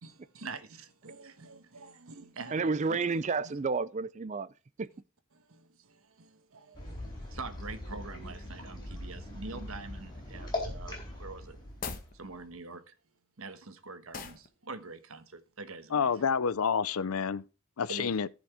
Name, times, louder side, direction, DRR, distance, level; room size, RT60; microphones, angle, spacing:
voice 1, 0.0-3.1 5.3-11.6 12.1-12.9 13.4-16.3 17.9-18.1, right 3 dB, 70° right, 1.2 m, -45 dB
voice 2, 2.5-4.5 4.8-4.9, right 4 dB, 35° right, 0.4 m, -30 dB
sound 1, 6.7-12.6, left 2 dB, 20° left, 4.2 m, -41 dB
sound 2, 11.7-12.1 14.1-14.5, left 5 dB, 40° left, 1.2 m, -39 dB
voice 3, 15.9-17.4 17.8-18.3, left 6 dB, 80° left, 0.5 m, -28 dB
14.5 x 5.2 x 4.9 m
head